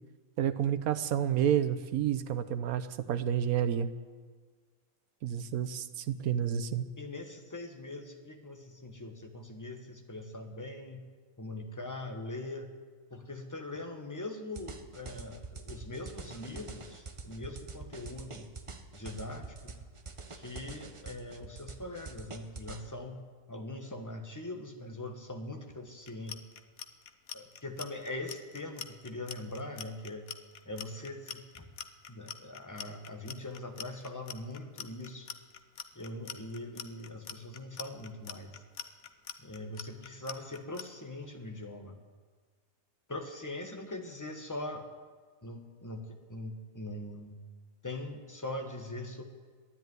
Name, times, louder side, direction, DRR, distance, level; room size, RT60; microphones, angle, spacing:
voice 1, 0.4-3.9 5.2-6.9, right 9 dB, 75° right, 12 dB, 1.2 m, -30 dB
voice 2, 6.7-11.0 11.4-12.7 13.1-18.5 18.9-19.8 20.3-23.2 23.5-26.4 27.3-30.3 30.6-31.6 32.1-35.3 35.9-38.6 39.4-42.0 43.1-44.8 45.4-47.4 47.8-49.2, left 2 dB, 15° left, 4 dB, 1.2 m, -42 dB
sound 1, 14.6-22.8, right 4 dB, 30° right, 0.6 m, -45 dB
Clock, 26.0-40.8, left 9 dB, 75° left, 1.2 m, -43 dB
13.0 x 10.5 x 9.4 m, 1.5 s
omnidirectional pair, 1.6 m